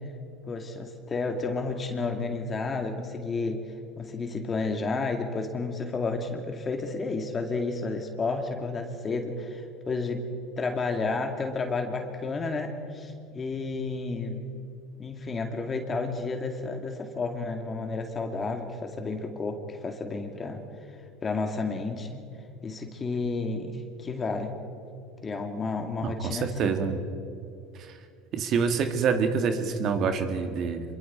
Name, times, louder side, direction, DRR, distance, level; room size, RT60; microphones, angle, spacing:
voice 1, 0.4-3.7 4.0-10.3 10.6-14.5 15.0-20.6 21.2-22.2 22.6-24.6 25.2-26.8, left 3 dB, 30° left, 4 dB, 2.3 m, -31 dB
voice 2, 26.0-27.0 27.8-27.9 28.3-30.8, right 6 dB, 50° right, 6 dB, 2.1 m, -26 dB
26.0 x 23.0 x 4.4 m, 2.6 s
hypercardioid pair, 80°, 0 cm